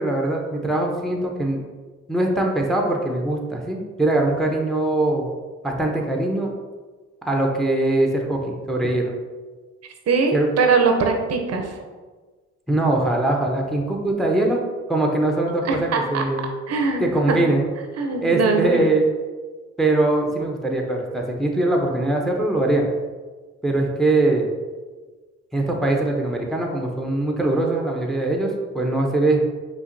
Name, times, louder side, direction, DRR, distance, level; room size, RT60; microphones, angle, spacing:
voice 1, 0.0-1.6 2.1-5.3 5.6-6.5 7.2-9.1 10.3-10.5 12.7-14.6 14.9-16.5 17.0-17.6 18.2-19.1 19.8-22.9 23.6-24.5 25.5-29.4, right 2 dB, ahead, 0 dB, 0.6 m, -22 dB
voice 2, 10.1-11.8 15.6-16.2 16.7-17.4 18.0-18.8, right 4 dB, 55° right, 3 dB, 0.6 m, -21 dB
5.6 x 2.5 x 2.6 m, 1.4 s
cardioid pair, 90°, 30 cm